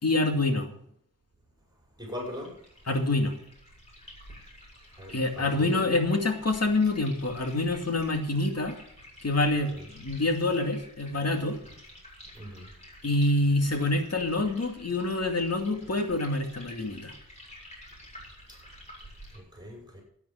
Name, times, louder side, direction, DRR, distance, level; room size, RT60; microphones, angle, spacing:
voice 1, 0.0-0.7 2.9-3.3 5.1-8.7 9.2-11.6 13.0-17.1, left 2 dB, 45° left, 4 dB, 2.4 m, -26 dB
voice 2, 2.0-2.6 4.9-5.8 9.7-9.9 12.3-12.7 18.5-18.6 19.3-20.0, left 1 dB, 10° right, -1 dB, 5.7 m, -40 dB
sound 1, 2.1-19.4, equal, 20° left, 7.0 m, -50 dB
12.5 x 9.6 x 5.9 m, 0.68 s
wide cardioid pair, 115°, 36 cm